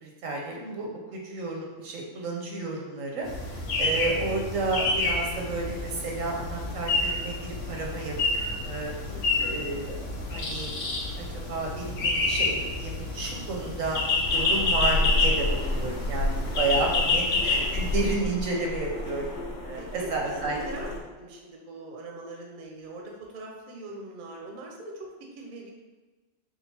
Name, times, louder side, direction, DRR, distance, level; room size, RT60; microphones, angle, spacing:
voice 1, 0.0-8.1 8.6-8.9 9.4-10.9 11.2-19.4 19.6-20.6, right 3 dB, 85° right, -1 dB, 1.2 m, -32 dB
sound 1, 3.2-18.2, left 3 dB, 70° left, 1.1 m, -28 dB
voice 2, 9.1-9.6 16.6-17.5 19.8-20.9 21.2-25.7, right 2 dB, 50° right, 0 dB, 0.7 m, -42 dB
sound 2, 14.2-21.0, left 1 dB, 55° left, 0.5 m, -31 dB
3.8 x 2.4 x 4.2 m, 1.2 s
omnidirectional pair, 1.3 m